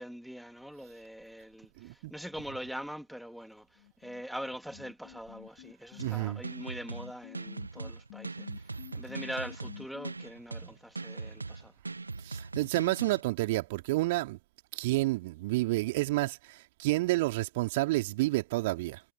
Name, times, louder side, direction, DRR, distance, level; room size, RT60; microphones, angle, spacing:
voice 1, 0.0-3.7 4.0-8.5 8.9-11.7, equal, ahead, 3.0 m, -42 dB
voice 2, 1.8-2.1 6.0-6.4 12.2-14.4 14.7-19.0, right 20 dB, 50° right, 2.9 m, -30 dB
sound 1, 3.8-10.1, left 18 dB, 50° left, 6.5 m, -49 dB
sound 2, 6.0-13.2, right 3 dB, 80° right, 1.0 m, -40 dB
figure-of-eight pair, 90°, 0 cm